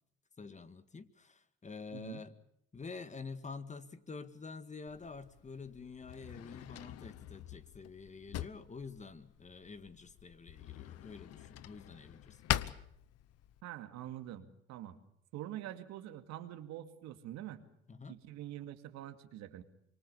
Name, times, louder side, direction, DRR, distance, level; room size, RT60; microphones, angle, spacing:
voice 1, 0.4-2.3 2.7-12.8 17.9-18.2, left 4 dB, 25° left, 12 dB, 1.8 m, -48 dB
voice 2, 1.9-2.2 13.6-15.0 15.3-17.6 18.1-19.6, right 12 dB, 65° right, 8 dB, 2.4 m, -45 dB
Drawer open or close, 4.9-13.6, left 13 dB, 60° left, 1.0 m, -43 dB
26.0 x 24.0 x 6.9 m, 0.73 s
supercardioid pair, 75°, 29 cm